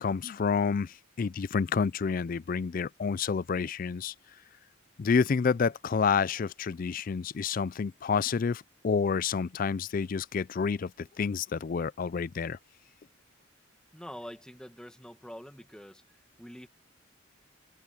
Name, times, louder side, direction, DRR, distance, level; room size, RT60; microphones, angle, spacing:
voice 1, 0.0-4.1 5.0-12.6, left 5 dB, 40° left, 0.4 m, -29 dB
voice 2, 13.9-16.7, equal, 5° left, 2.0 m, -46 dB
head